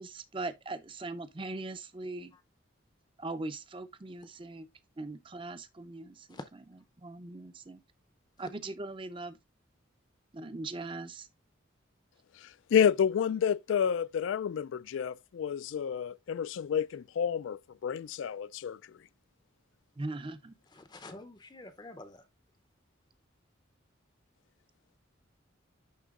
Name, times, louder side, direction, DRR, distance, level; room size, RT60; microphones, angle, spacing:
voice 1, 0.0-2.3 3.2-4.7 5.0-6.4 7.0-7.8 8.4-9.4 10.3-11.3 20.0-20.5, right 2 dB, 25° right, 0.5 m, -40 dB
voice 2, 12.4-18.8, left 8 dB, 70° left, 0.3 m, -30 dB
voice 3, 20.7-22.2, left 2 dB, 20° left, 0.6 m, -47 dB
11.0 x 3.7 x 2.4 m
head